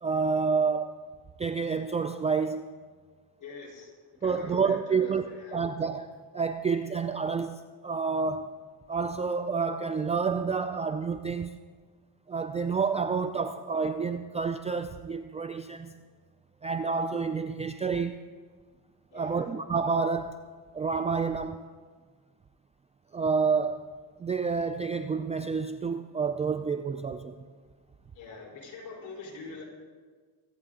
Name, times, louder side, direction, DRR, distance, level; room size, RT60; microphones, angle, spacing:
voice 1, 0.0-0.9 1.4-2.7 4.2-5.2 5.5-8.5 8.9-11.6 12.3-15.9 16.6-18.2 19.1-20.4 20.7-21.6 23.1-23.8 24.2-27.3, right 5 dB, 15° right, 8 dB, 0.3 m, -29 dB
voice 2, 3.4-5.6 19.1-19.5 28.1-29.6, left 4 dB, 45° left, -2 dB, 4.2 m, -44 dB
24.0 x 9.0 x 3.8 m, 1.5 s
cardioid pair, 120°, 42 cm